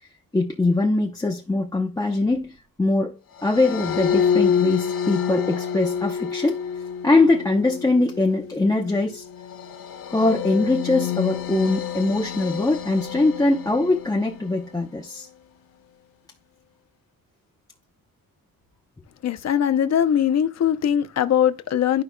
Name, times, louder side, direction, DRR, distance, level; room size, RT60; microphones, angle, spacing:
voice 1, 0.3-6.6 7.0-9.3 10.1-15.3, left 2 dB, 10° left, 0.7 m, -22 dB
sound 1, 3.4-14.7, left 7 dB, 75° left, 1.4 m, -28 dB
voice 2, 19.2-22.0, left 9 dB, 45° left, 0.7 m, -21 dB
12.5 x 5.2 x 2.2 m
wide cardioid pair, 170°, 36 cm